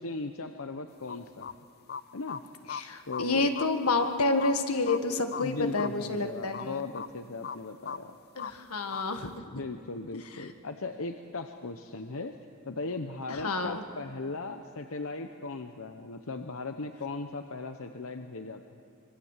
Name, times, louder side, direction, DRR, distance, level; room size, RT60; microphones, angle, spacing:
voice 1, 0.0-1.6 2.1-2.4 3.1-3.5 5.4-8.1 9.5-12.3 12.7-18.6, left 3 dB, 70° left, 6 dB, 0.9 m, -37 dB
sound 1, 1.1-1.5 1.9-2.0 2.3-2.4 2.7-2.8 3.1-3.7 4.0-4.1 4.4-4.5 4.9-5.1 5.3-5.4 5.8-6.0 6.5-6.6 6.9-7.1 7.4-7.6 7.9-8.0 8.4-8.5 8.9-9.0, left 7 dB, 45° left, 0.6 m, -37 dB
voice 2, 2.7-6.8 8.4-9.3 13.3-13.8, left 3 dB, 85° left, 6 dB, 1.7 m, -29 dB
25.5 x 23.5 x 7.4 m, 2.3 s
head